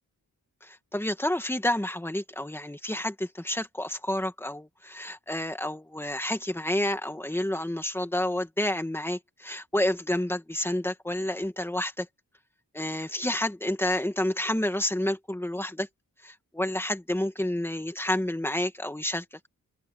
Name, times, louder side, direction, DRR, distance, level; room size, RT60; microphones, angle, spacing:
voice 1, 0.6-12.1 12.7-15.9 16.2-19.2, left 1 dB, 5° left, 2.0 m, -29 dB
open air
wide cardioid pair, 120°, 34 cm